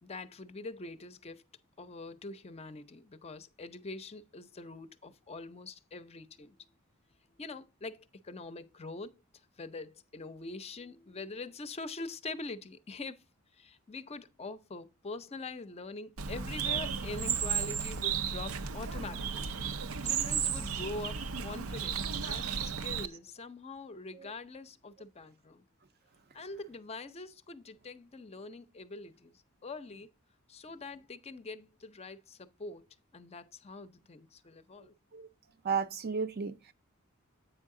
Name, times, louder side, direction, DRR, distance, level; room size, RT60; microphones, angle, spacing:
voice 1, 0.0-1.4 1.8-6.6 7.4-9.1 9.6-13.2 13.5-19.5 19.8-25.7 26.3-30.1 30.5-32.9 33.1-35.0, left 3 dB, 30° left, 0.5 m, -44 dB
Bird, 16.2-23.1, right 7 dB, 90° right, 0.6 m, -34 dB
voice 2, 35.6-36.7, right 5 dB, 50° right, 0.6 m, -33 dB
8.2 x 5.5 x 3.7 m
head